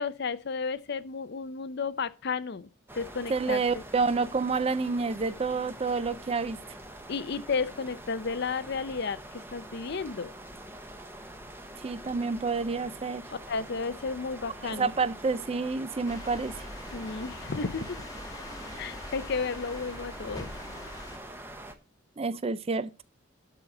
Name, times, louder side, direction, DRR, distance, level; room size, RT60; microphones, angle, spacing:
voice 1, 0.0-2.7 2.9-3.8 7.1-10.3 13.5-14.9 16.9-18.0 18.8-20.5, left 4 dB, 50° left, 0.5 m, -33 dB
sound 1, 2.9-21.7, right 1 dB, 10° right, 0.8 m, -45 dB
voice 2, 3.3-6.6 11.8-13.2 14.6-16.6 18.7-18.8 22.2-22.9, right 4 dB, 30° right, 0.4 m, -29 dB
sound 2, 16.1-21.2, left 2 dB, 15° left, 1.1 m, -43 dB
12.0 x 4.0 x 5.9 m
head